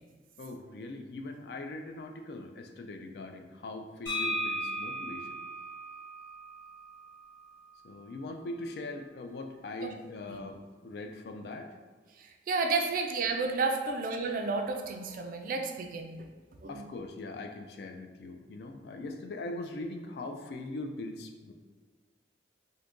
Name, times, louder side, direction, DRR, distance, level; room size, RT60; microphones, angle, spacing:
voice 1, 0.4-5.3 7.8-11.7 12.8-12.9 13.8-13.9 16.7-21.5, left 2 dB, 60° left, 5 dB, 0.3 m, -41 dB
sound 1, 4.1-7.8, equal, 90° left, 1.4 m, -37 dB
voice 2, 12.5-16.3 16.6-16.8, right 4 dB, 50° right, 4 dB, 0.3 m, -31 dB
2.7 x 2.5 x 3.6 m, 1.5 s
head